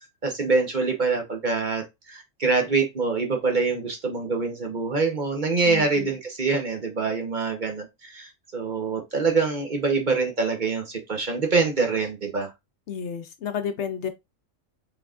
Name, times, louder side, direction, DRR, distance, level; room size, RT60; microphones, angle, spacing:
voice 1, 0.2-12.5, right 4 dB, 40° right, 1.0 m, -25 dB
voice 2, 5.7-6.1 12.9-14.1, left 7 dB, 65° left, 0.9 m, -31 dB
5.9 x 3.5 x 2.4 m
omnidirectional pair, 1.4 m